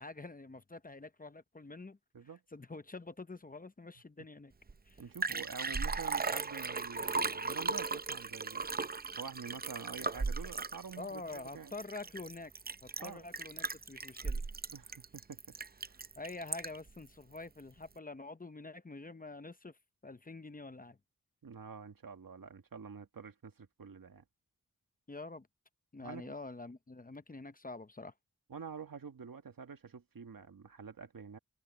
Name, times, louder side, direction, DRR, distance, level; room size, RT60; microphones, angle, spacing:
voice 1, 0.0-2.0 2.5-4.5 4.9-5.0 11.0-12.5 12.8-14.4 16.2-19.8 20.0-21.0 25.1-25.5 25.9-28.1, left 3 dB, 25° left, 0.8 m, -46 dB
Liquid, 4.7-4.8 5.0-16.9 17.4-17.5, right 4 dB, 30° right, 0.6 m, -37 dB
voice 2, 5.0-8.8 9.2-11.7 13.0-13.3 14.7-15.4 15.8-16.0 21.4-24.2 26.0-26.3 28.5-31.4, right 6 dB, 80° right, 1.7 m, -47 dB
wide cardioid pair, 85°, 34 cm